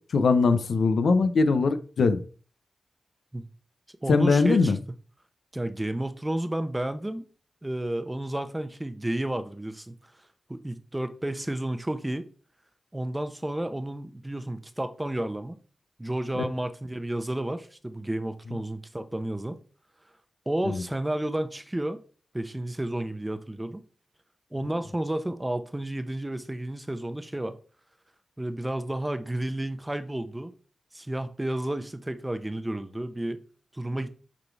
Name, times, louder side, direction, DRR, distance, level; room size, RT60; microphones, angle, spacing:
voice 1, 0.1-2.2 4.1-4.8 16.4-16.5 20.6-20.8, left 4 dB, 80° left, 0.7 m, -21 dB
voice 2, 4.0-4.7 5.5-7.2 7.6-9.9 10.5-12.3 12.9-15.6 16.0-19.6 20.5-22.0 22.3-23.8 24.5-27.5 28.4-30.5 30.9-33.4 33.7-34.1, right 1 dB, 15° right, 0.9 m, -31 dB
8.5 x 3.9 x 4.7 m
wide cardioid pair, 80°, 0 cm